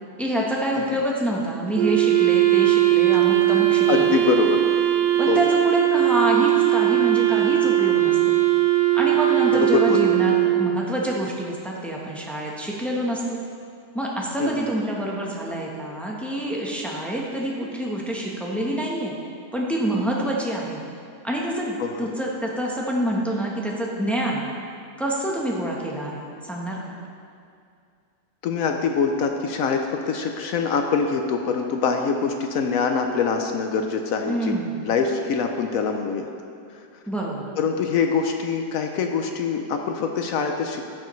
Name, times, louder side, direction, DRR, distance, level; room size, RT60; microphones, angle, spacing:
voice 1, 0.2-4.1 5.2-8.4 8.9-13.4 13.9-19.1 19.5-20.8 21.2-24.4 25.0-27.0 34.3-34.8 37.1-37.5, right 1 dB, ahead, -3 dB, 0.6 m, -27 dB
Wind instrument woodwind instrument, 1.8-11.0, right 14 dB, 80° right, 0.5 m, -19 dB
voice 2, 3.9-4.6 5.3-5.4 9.5-10.0 14.4-14.7 21.8-22.1 28.4-34.5 34.8-36.3 37.6-40.9, left 5 dB, 70° left, 4 dB, 0.9 m, -24 dB
13.0 x 6.8 x 3.1 m, 2.3 s
omnidirectional pair, 1.8 m